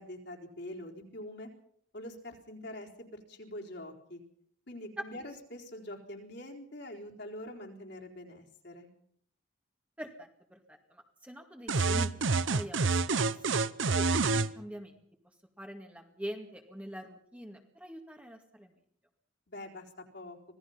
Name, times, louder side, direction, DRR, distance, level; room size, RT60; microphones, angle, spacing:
voice 1, 0.0-1.5 1.9-4.2 4.7-8.9 19.5-19.8 20.1-20.4, left 1 dB, 55° left, -1 dB, 4.1 m, -44 dB
voice 2, 10.0-13.3 13.9-15.0 15.6-18.7, equal, 5° right, 3 dB, 2.1 m, -44 dB
sound 1, 11.7-14.5, right 4 dB, 75° right, 0.9 m, -27 dB
26.0 x 18.0 x 5.7 m, 0.64 s
head